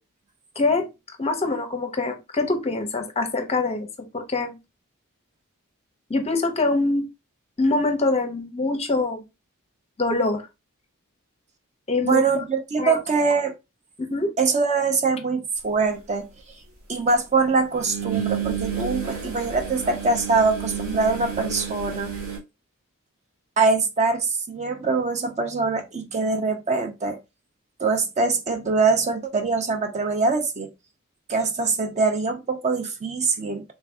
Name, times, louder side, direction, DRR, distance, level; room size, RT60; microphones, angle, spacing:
voice 1, 0.6-0.9 1.2-3.9 4.1-4.5 6.1-7.1 7.6-9.2 10.0-10.5 11.9-12.4 12.8-13.0 14.0-14.3, left 3 dB, 30° left, 0.6 m, -24 dB
voice 2, 12.0-13.5 14.4-16.3 16.9-22.1 23.6-27.2 27.8-30.7 31.3-33.6, right 4 dB, 30° right, 0.5 m, -23 dB
sound 1, 15.8-15.9 17.8-22.4, right 7 dB, 70° right, 1.3 m, -30 dB
3.4 x 2.6 x 3.3 m
head